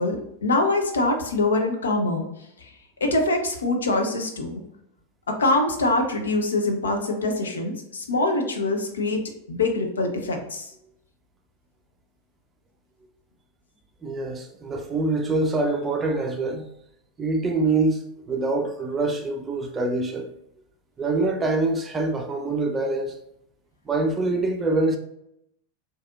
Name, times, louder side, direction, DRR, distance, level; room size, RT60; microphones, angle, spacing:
voice 1, 0.0-2.2 2.6-2.7 3.0-4.6 5.3-9.2 9.5-10.7, left 2 dB, 70° left, 0.6 m, -24 dB
voice 2, 14.0-16.7 17.2-20.3 21.0-23.2 23.9-25.0, right 2 dB, 20° right, 0.5 m, -25 dB
4.1 x 2.6 x 2.4 m
figure-of-eight pair, 90°, 0 cm